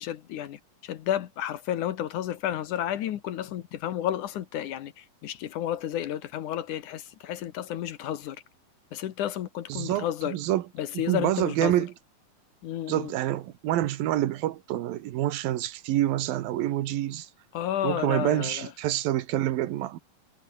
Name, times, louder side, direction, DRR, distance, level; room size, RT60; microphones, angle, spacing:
voice 1, 0.0-8.4 8.9-10.4 10.8-11.7 12.6-13.1 17.5-18.7, left 11 dB, 65° left, 2.6 m, -31 dB
voice 2, 9.7-10.7 10.9-11.9 12.9-17.3 17.8-20.0, right 14 dB, 85° right, 3.0 m, -27 dB
omnidirectional pair, 4.0 m